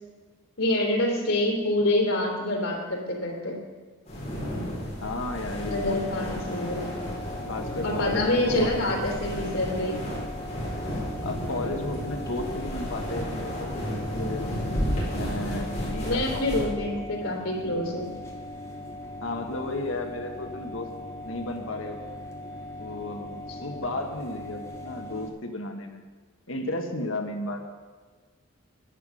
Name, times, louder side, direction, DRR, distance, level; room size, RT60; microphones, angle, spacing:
voice 1, 0.6-3.6 5.7-6.9 7.8-10.0 16.0-18.1 23.5-23.8, left 1 dB, 90° left, -2 dB, 3.2 m, -26 dB
sound 1, 4.0-16.7, equal, 30° left, 4.9 m, -33 dB
voice 2, 5.0-6.4 7.5-9.0 11.2-13.8 14.1-14.5 15.1-17.0 19.2-20.9 21.2-22.0 22.8-23.3 23.6-26.0 26.5-27.6, left 2 dB, 70° left, 4 dB, 1.3 m, -34 dB
sound 2, 5.5-25.3, left 1 dB, 15° left, 1.8 m, -40 dB
11.5 x 9.9 x 6.3 m, 1.4 s
head